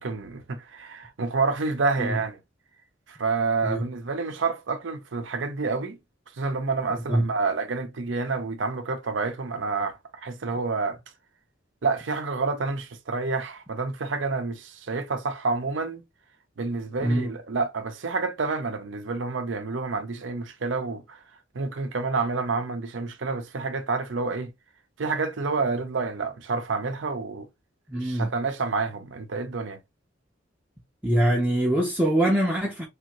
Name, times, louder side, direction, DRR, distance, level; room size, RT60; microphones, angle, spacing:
voice 1, 0.0-2.4 3.1-6.0 6.4-11.0 11.8-16.0 16.6-21.2 21.5-24.5 25.0-27.5 27.9-29.8, right 4 dB, 70° right, 0.6 m, -28 dB
voice 2, 6.9-7.3 17.0-17.3 27.9-28.3 31.0-32.9, right 1 dB, 10° right, 0.6 m, -24 dB
3.4 x 2.6 x 2.9 m
head